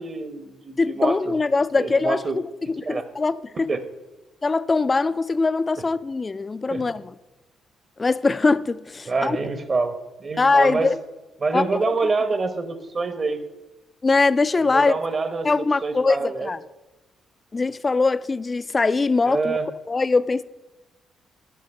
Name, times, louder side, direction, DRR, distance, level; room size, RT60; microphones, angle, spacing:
voice 1, 0.0-1.3 1.8-2.4 2.8-3.0 3.7-3.8 6.7-6.9 9.1-9.9 10.2-10.9 11.4-13.4 14.7-16.5 19.3-19.7, right 3 dB, 40° right, 1.0 m, -26 dB
voice 2, 0.8-3.7 4.4-7.1 8.0-9.4 10.4-11.0 11.5-11.8 14.0-14.9 15.4-16.6 17.5-19.6 19.9-20.4, left 3 dB, 25° left, 0.3 m, -22 dB
10.5 x 6.1 x 5.3 m
cardioid pair, 90°, 0 cm